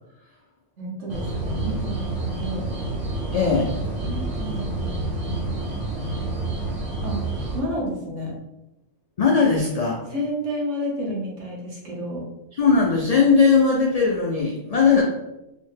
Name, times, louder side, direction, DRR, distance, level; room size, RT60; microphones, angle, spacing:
voice 1, 0.8-2.7 4.0-5.8 7.0-7.2 7.5-8.3 10.1-12.3, equal, 70° right, -3 dB, 1.3 m, -31 dB
sound 1, 1.1-7.6, right 2 dB, 45° right, 0.6 m, -28 dB
voice 2, 3.3-3.7 9.2-10.0 12.6-15.0, left 5 dB, 70° left, -3 dB, 0.3 m, -19 dB
4.0 x 2.1 x 3.2 m, 0.94 s
omnidirectional pair, 1.3 m